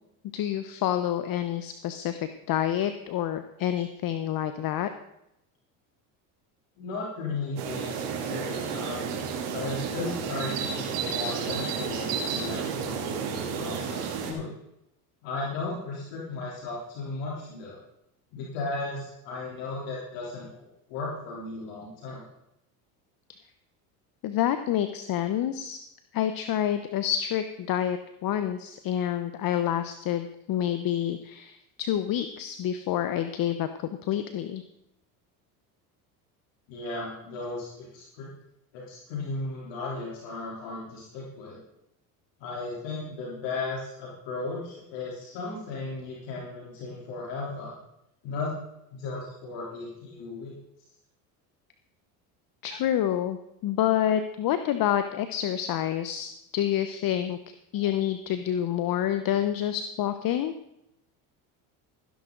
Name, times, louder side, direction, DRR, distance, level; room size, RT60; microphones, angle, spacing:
voice 1, 0.3-4.9 24.2-25.8 26.1-33.7 34.0-34.6 52.6-53.4 53.6-57.4 57.7-60.5, left 11 dB, 50° left, 10 dB, 1.0 m, -28 dB
voice 2, 6.8-9.1 9.5-13.1 13.6-14.5 15.2-17.8 18.3-22.2 36.7-38.3 38.7-41.6 42.4-47.7 48.2-48.6 48.9-50.5, left 3 dB, 70° left, -4 dB, 3.6 m, -35 dB
sound 1, 7.6-14.3, right 6 dB, 80° right, 3.1 m, -31 dB
16.5 x 10.5 x 3.9 m, 0.82 s
hypercardioid pair, 80°, 45 cm